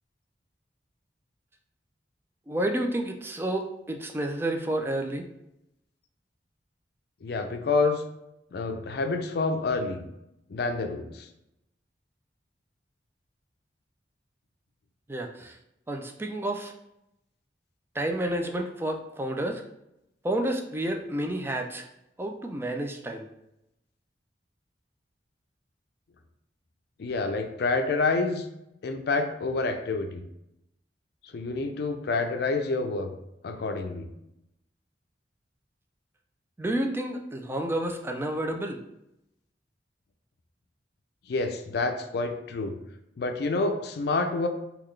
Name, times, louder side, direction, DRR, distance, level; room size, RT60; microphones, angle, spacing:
voice 1, 2.5-5.2 15.1-15.6 15.9-16.7 17.9-19.6 20.2-21.8 22.2-23.3 36.6-38.8, right 1 dB, 15° right, 4 dB, 0.3 m, -30 dB
voice 2, 7.2-8.0 8.5-10.0 10.5-11.3 27.0-28.5 28.8-30.2 31.3-33.1 33.4-34.1 41.3-42.8 43.2-44.5, left 3 dB, 65° left, 6 dB, 0.4 m, -28 dB
3.7 x 2.3 x 3.2 m, 0.84 s
head